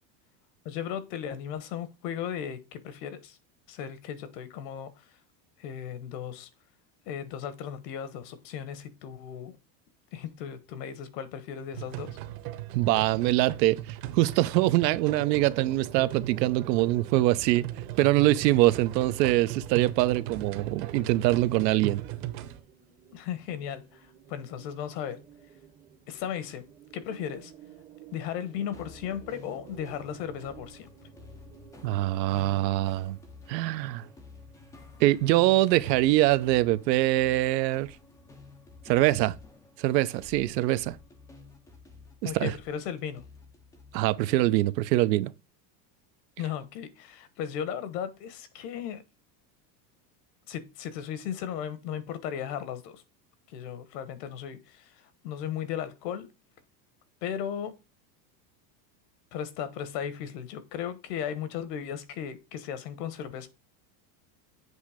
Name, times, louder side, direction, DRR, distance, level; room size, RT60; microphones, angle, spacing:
voice 1, 0.6-3.4 3.7-5.0 5.6-6.5 7.1-9.6 10.1-12.2 23.1-25.2 26.1-26.6 26.9-27.5 28.1-30.9 42.2-43.2 46.4-49.0 50.5-53.0 53.5-56.3 57.2-57.8 59.3-63.5, left 9 dB, 75° left, 1.3 m, -36 dB
sound 1, 11.7-22.6, right 13 dB, 50° right, 1.0 m, -38 dB
voice 2, 12.7-17.6 18.0-22.0 31.8-33.2 33.5-34.1 35.0-37.9 38.9-39.3 39.8-41.0 42.2-42.5 43.9-45.3, right 16 dB, 90° right, 0.8 m, -24 dB
sound 2, 15.0-33.7, right 8 dB, 20° right, 0.7 m, -50 dB
sound 3, 28.7-44.6, left 3 dB, 10° left, 0.3 m, -51 dB
8.0 x 3.2 x 4.9 m
supercardioid pair, 160°, 48 cm